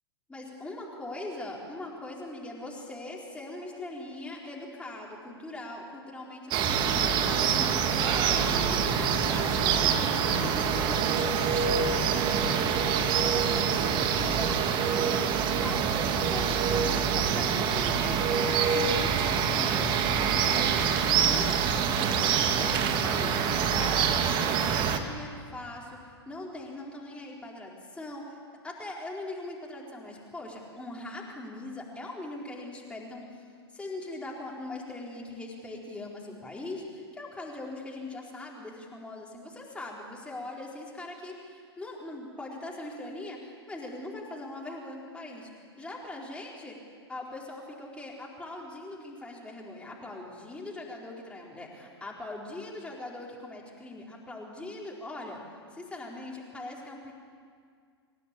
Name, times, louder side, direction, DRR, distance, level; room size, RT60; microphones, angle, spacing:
voice 1, 0.3-15.3 15.6-28.4 28.6-33.4 33.7-46.8 47.1-55.4 55.7-57.1, left 2 dB, 10° left, -2 dB, 4.5 m, -41 dB
sound 1, 6.5-25.0, right 7 dB, 35° right, 2.1 m, -25 dB
27.0 x 16.0 x 8.5 m, 2.1 s
figure-of-eight pair, 100°, 14 cm